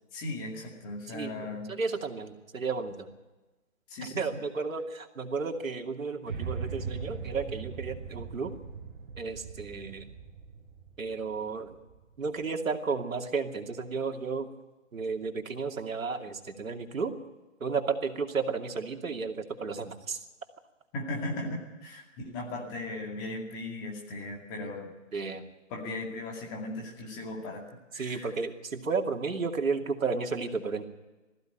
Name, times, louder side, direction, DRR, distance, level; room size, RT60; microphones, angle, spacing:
voice 1, 0.1-1.7 3.9-4.4 20.9-24.9 25.7-27.6 27.9-28.3, left 2 dB, 15° left, 0 dB, 2.3 m, -37 dB
voice 2, 1.7-3.1 4.2-8.5 9.2-10.0 11.0-11.8 12.2-14.5 14.9-17.1 17.6-20.2 25.1-25.4 28.0-30.8, right 4 dB, 85° right, 4 dB, 2.7 m, -33 dB
sound 1, 6.3-12.4, right 6 dB, 40° right, 5.4 m, -40 dB
19.0 x 15.5 x 9.1 m, 1.2 s
hypercardioid pair, 170°, 39 cm